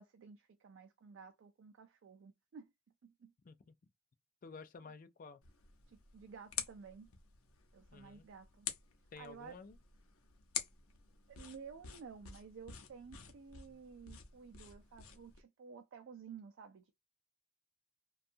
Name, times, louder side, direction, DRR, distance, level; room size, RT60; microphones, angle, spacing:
voice 1, 0.0-2.7 3.0-3.3 5.9-7.1 7.7-8.7 9.2-9.6 11.3-16.9, right 6 dB, 60° right, 0.3 m, -53 dB
voice 2, 4.4-5.4 7.9-8.3 9.1-9.8, left 4 dB, 40° left, 0.4 m, -52 dB
sound 1, 5.4-15.4, left 8 dB, 85° left, 0.7 m, -48 dB
2.6 x 2.3 x 2.6 m
head